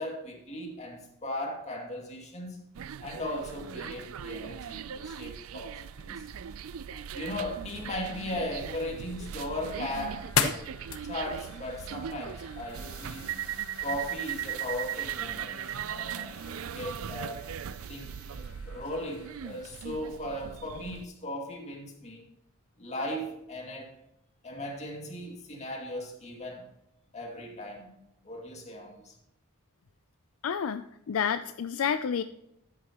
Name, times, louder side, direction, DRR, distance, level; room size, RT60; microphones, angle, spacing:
voice 1, 0.0-2.7 3.0-6.3 6.9-10.3 11.0-13.3 13.8-15.6 15.9-17.5 17.9-22.2 22.8-23.9 24.4-26.7 27.1-27.9 28.2-29.2, left 1 dB, 30° left, 0 dB, 2.3 m, -37 dB
sound 1, 2.7-21.0, right 9 dB, 70° right, 0.4 m, -39 dB
sound 2, 8.7-19.6, left 6 dB, 85° left, 1.0 m, -39 dB
voice 2, 30.4-32.2, left 7 dB, 70° left, 10 dB, 0.4 m, -29 dB
12.5 x 8.7 x 3.0 m, 0.82 s
head